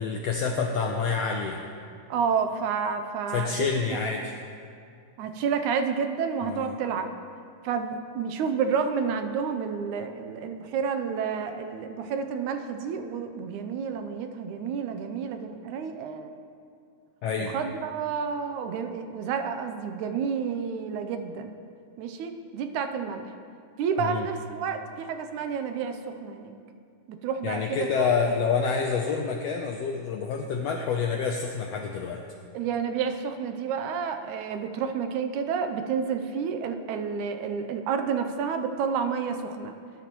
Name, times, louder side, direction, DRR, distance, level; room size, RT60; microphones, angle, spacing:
voice 1, 0.0-1.6 3.3-4.3 6.4-6.7 17.2-17.5 24.0-24.3 27.4-32.2, left 5 dB, 80° left, 2 dB, 1.4 m, -27 dB
voice 2, 2.1-4.1 5.2-7.1 7.6-16.3 17.4-21.5 22.0-23.3 23.8-26.5 27.1-28.1 32.5-39.8, right 6 dB, 80° right, 7 dB, 2.0 m, -30 dB
21.0 x 10.0 x 3.0 m, 2.4 s
omnidirectional pair, 3.6 m